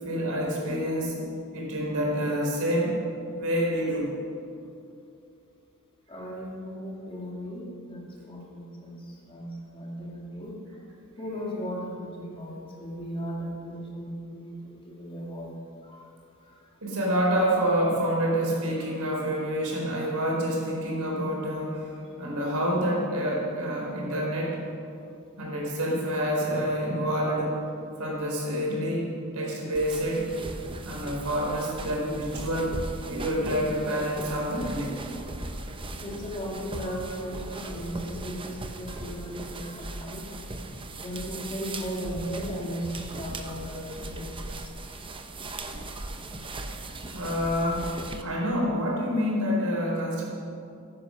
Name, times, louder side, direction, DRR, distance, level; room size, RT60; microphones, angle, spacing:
voice 1, 0.0-1.2 1.5-3.0 3.3-4.1 16.8-24.6 25.4-27.6 28.0-30.3 30.8-32.7 33.0-35.0 47.1-50.2, equal, 70° right, -3 dB, 4.3 m, -27 dB
voice 2, 6.1-10.6 11.2-15.5 15.8-16.1 16.4-16.6 18.8-18.9 22.3-22.4 35.2-35.6 36.0-40.2 41.0-44.7, equal, 25° left, -2 dB, 2.4 m, -37 dB
sound 1, 29.7-48.2, right 2 dB, 25° right, 0.8 m, -38 dB
15.5 x 9.8 x 6.3 m, 2.6 s
head